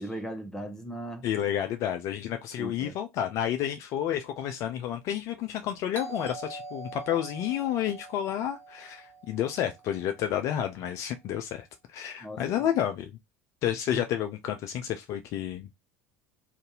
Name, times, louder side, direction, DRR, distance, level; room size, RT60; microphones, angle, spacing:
voice 1, 0.0-1.3 2.6-3.0 12.2-12.7 13.9-14.0, right 1 dB, 5° left, 0.8 m, -38 dB
voice 2, 1.2-11.7 11.9-13.1 13.6-15.7, left 10 dB, 45° left, 0.4 m, -30 dB
Doorbell, 5.9-10.5, right 3 dB, 30° left, 1.0 m, -44 dB
2.6 x 2.5 x 3.8 m
figure-of-eight pair, 70°, 7 cm